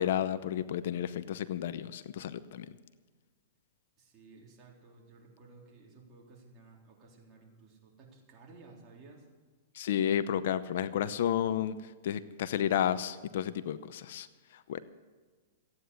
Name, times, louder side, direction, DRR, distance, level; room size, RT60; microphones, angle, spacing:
voice 1, 0.0-2.8 9.7-14.8, left 10 dB, 65° left, 14 dB, 0.7 m, -32 dB
voice 2, 4.0-9.3, right 3 dB, 30° right, -2 dB, 3.8 m, -55 dB
15.0 x 9.5 x 8.2 m, 1.4 s
hypercardioid pair, 140°, 0 cm